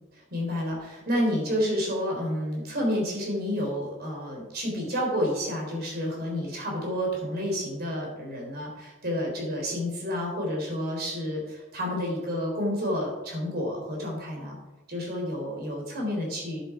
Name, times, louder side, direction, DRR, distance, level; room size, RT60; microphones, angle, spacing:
voice 1, 0.1-14.6 14.9-16.6, equal, 55° right, 0 dB, 3.8 m, -30 dB
10.5 x 7.9 x 5.0 m, 1.1 s
head